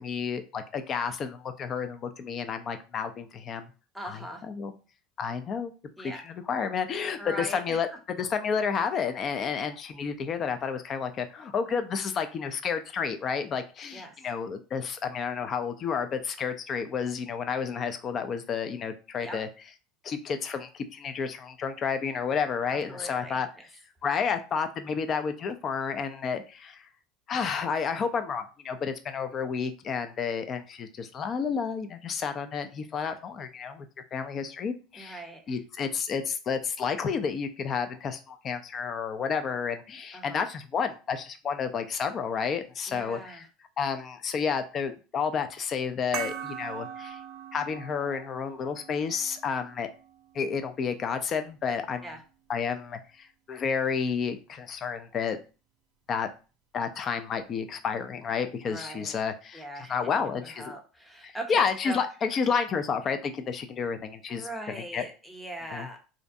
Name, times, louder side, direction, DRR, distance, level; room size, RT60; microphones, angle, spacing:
voice 1, 0.0-3.7 4.0-4.7 5.2-5.7 6.0-19.5 20.0-23.5 24.0-26.8 27.3-33.9 34.1-35.2 35.5-43.4 43.8-47.2 47.5-49.9 50.3-52.1 52.5-55.4 56.1-56.3 56.7-59.6 59.9-60.7 61.2-65.0 65.7-65.9, left 6 dB, 40° left, 8 dB, 0.4 m, -31 dB
voice 2, 3.9-4.4 6.0-6.2 7.2-8.0 13.9-14.3 19.2-19.4 22.7-23.7 34.9-35.6 40.1-40.4 42.9-43.5 52.0-52.2 58.7-59.2 59.5-62.0 64.3-66.0, right 1 dB, ahead, 2 dB, 0.7 m, -41 dB
sound 1, 46.1-51.2, right 8 dB, 60° right, 0.4 m, -41 dB
2.5 x 2.1 x 2.6 m, 0.34 s
hypercardioid pair, 90°, 0 cm